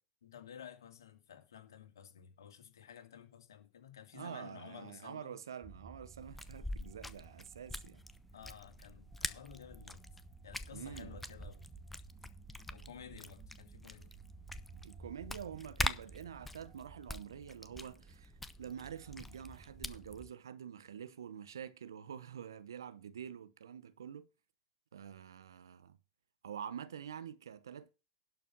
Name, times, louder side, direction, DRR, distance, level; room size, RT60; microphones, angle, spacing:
voice 1, 0.2-5.4 8.3-10.1 10.4-11.7 12.7-14.1, left 9 dB, 80° left, 2.3 m, -53 dB
voice 2, 4.1-8.0 10.7-11.2 14.8-18.3 18.6-24.3 24.9-26.0 26.4-27.9, right 8 dB, 80° right, 1.0 m, -47 dB
sound 1, 5.6-20.3, right 4 dB, 25° right, 1.7 m, -56 dB
sound 2, 6.2-20.2, left 1 dB, 5° left, 0.9 m, -45 dB
11.5 x 5.5 x 6.1 m
hypercardioid pair, 95°, 2 cm